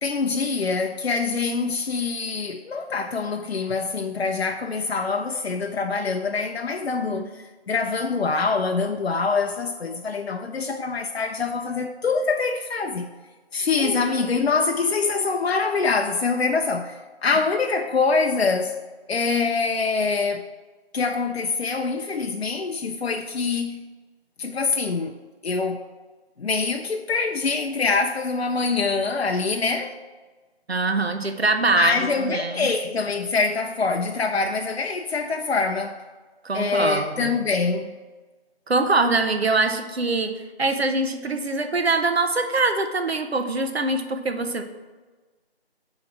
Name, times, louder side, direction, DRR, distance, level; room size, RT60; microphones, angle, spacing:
voice 1, 0.0-13.1 13.5-18.8 19.1-20.5 20.9-23.8 24.4-25.2 25.4-25.9 26.4-29.9 31.7-36.0 36.5-37.9, left 4 dB, 70° left, 0.6 m, -24 dB
voice 2, 30.7-32.7 36.4-37.4 38.7-44.6, right 3 dB, 70° right, 0.9 m, -23 dB
8.7 x 3.2 x 6.1 m
figure-of-eight pair, 175°, 32 cm